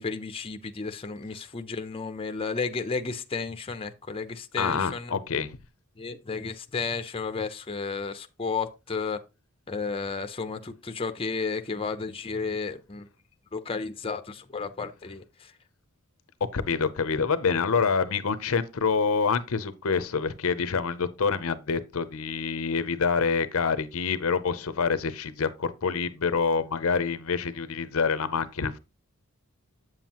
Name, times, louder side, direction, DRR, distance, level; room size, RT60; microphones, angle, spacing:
voice 1, 0.0-5.2 6.0-9.2 9.7-13.1 13.5-15.5, left 4 dB, 25° left, 0.6 m, -33 dB
voice 2, 4.6-5.6 16.5-28.8, left 5 dB, 70° left, 0.7 m, -26 dB
7.9 x 7.3 x 2.9 m
head